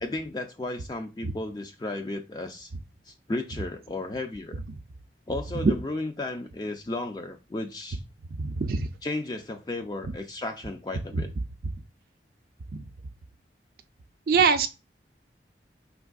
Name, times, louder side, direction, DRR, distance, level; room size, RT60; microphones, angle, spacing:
voice 1, 0.0-2.7 3.1-4.6 5.3-8.0 9.0-11.3, left 2 dB, 20° left, 0.3 m, -34 dB
voice 2, 8.4-8.9 12.7-12.8 14.3-14.7, right 5 dB, 50° right, 0.4 m, -23 dB
5.1 x 3.4 x 2.3 m
head